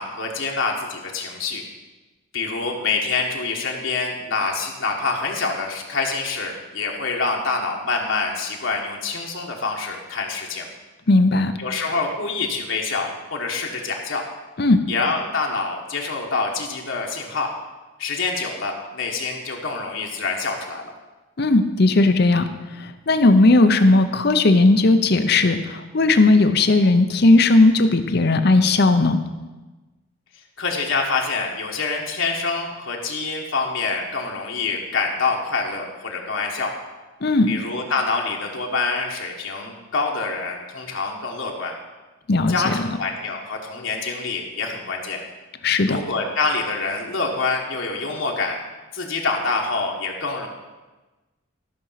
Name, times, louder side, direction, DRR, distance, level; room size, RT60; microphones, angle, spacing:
voice 1, 0.0-1.6 2.3-10.7 11.6-14.2 14.9-17.5 18.0-20.9 30.6-36.7 37.5-41.7 42.5-45.2 45.9-48.6 48.9-50.5, left 4 dB, 65° left, 0 dB, 1.3 m, -26 dB
voice 2, 11.1-11.5 14.6-14.8 21.4-22.5 22.8-29.2 37.2-37.6 42.3-43.0 45.6-46.0, left 2 dB, 50° left, 9 dB, 0.6 m, -17 dB
13.0 x 6.2 x 5.7 m, 1.2 s
head